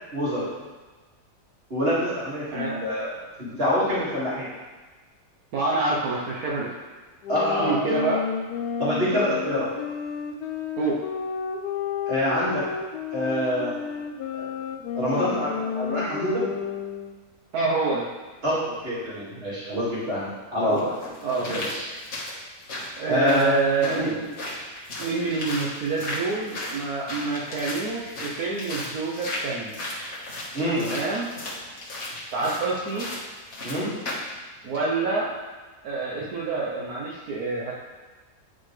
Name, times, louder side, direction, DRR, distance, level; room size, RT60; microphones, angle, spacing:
voice 1, 0.1-0.5 1.7-3.1 3.4-4.5 7.3-7.9 8.8-9.7 12.1-12.6 13.1-13.8 14.9-16.4 18.4-20.9 21.4-21.8 23.1-23.5 23.8-24.1 30.5-30.9 33.6-33.9, equal, 40° right, -9 dB, 2.5 m, -26 dB
voice 2, 2.5-2.8 5.5-6.7 7.6-8.2 10.8-11.0 17.5-18.1 20.6-20.9 21.2-21.6 23.0-24.3 25.0-29.7 30.8-31.3 32.3-33.1 34.6-35.3 35.8-37.7, right 3 dB, 75° right, -5 dB, 1.4 m, -27 dB
sound 1, 7.2-17.2, left 7 dB, 85° left, 1.1 m, -31 dB
sound 2, 20.8-34.3 34.7-34.8, left 1 dB, 50° left, 1.7 m, -35 dB
9.7 x 4.4 x 3.3 m, 1.3 s
omnidirectional pair, 1.6 m